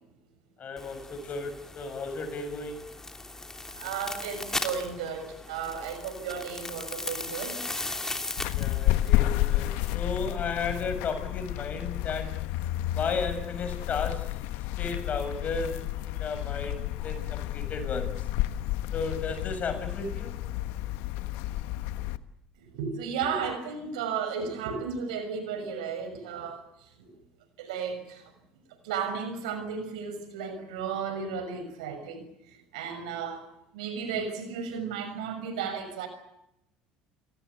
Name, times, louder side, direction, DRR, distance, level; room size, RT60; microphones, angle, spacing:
voice 1, 0.6-2.8 8.5-12.4 12.9-14.3 14.8-18.2 18.9-20.4, left 4 dB, 45° left, 9 dB, 6.7 m, -34 dB
sound 1, 0.8-9.9, left 2 dB, 15° left, 2.9 m, -38 dB
voice 2, 3.7-7.6 22.6-27.1 27.6-28.3 28.8-33.4 33.7-36.1, right 6 dB, 85° right, 9 dB, 6.4 m, -34 dB
sound 2, 8.4-22.2, left 15 dB, 75° left, 1.3 m, -31 dB
29.5 x 18.5 x 8.2 m, 0.83 s
hypercardioid pair, 80°, 4 cm